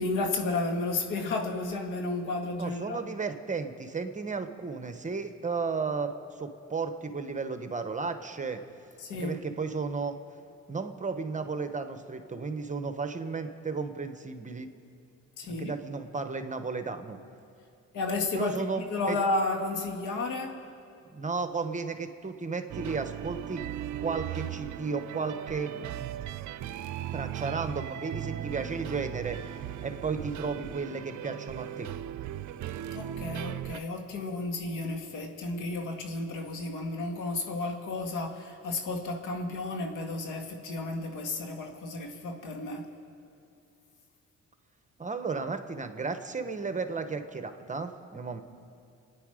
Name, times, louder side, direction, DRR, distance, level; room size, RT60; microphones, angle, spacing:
voice 1, 0.0-3.0 9.0-9.4 15.4-15.8 17.9-18.6 18.9-20.5 32.9-42.9, left 2 dB, 85° left, 3 dB, 1.9 m, -32 dB
voice 2, 2.6-6.1 6.4-8.6 9.1-10.2 10.7-14.7 15.5-17.2 18.3-19.2 21.1-23.7 24.0-26.0 27.1-29.4 29.8-31.9 45.0-48.4, right 4 dB, 25° right, 8 dB, 1.1 m, -34 dB
sound 1, 22.7-33.8, right 11 dB, 70° right, 0.6 m, -37 dB
28.5 x 9.7 x 5.0 m, 2.5 s
cardioid pair, 90°, 30 cm